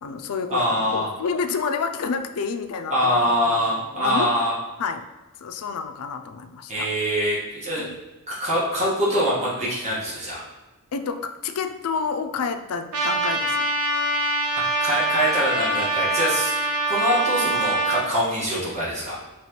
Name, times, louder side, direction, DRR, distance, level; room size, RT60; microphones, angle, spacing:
voice 1, 0.0-4.3 4.8-5.1 5.4-6.9 7.7-8.0 10.9-13.7, left 5 dB, 75° left, 7 dB, 0.4 m, -29 dB
voice 2, 0.5-1.1 2.9-4.5 6.7-7.9 8.3-10.4 14.8-16.5 16.9-19.2, equal, 30° right, -7 dB, 1.4 m, -24 dB
Trumpet, 12.9-18.0, right 2 dB, 75° right, 0.8 m, -24 dB
5.8 x 3.1 x 3.0 m, 1.1 s
head